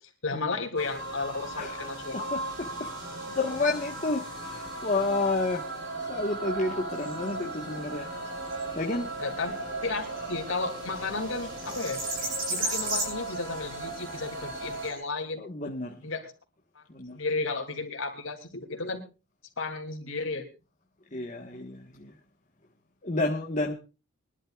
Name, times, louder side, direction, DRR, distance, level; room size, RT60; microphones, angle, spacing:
voice 1, 0.2-2.3 9.2-9.5 9.8-12.0 12.5-15.5 16.0-16.3 16.7-16.8 17.1-19.0 19.6-20.5, left 3 dB, 65° left, 3.2 m, -33 dB
sound 1, 0.8-14.9, right 2 dB, 55° right, 4.9 m, -37 dB
voice 2, 1.6-2.9 3.3-5.6 6.1-8.1 8.7-9.1 15.4-15.9 16.9-17.2 21.1-22.1 23.0-23.7, left 2 dB, 35° left, 1.5 m, -30 dB
sound 2, 6.9-15.0, right 2 dB, 40° right, 6.4 m, -37 dB
24.0 x 12.0 x 2.5 m
head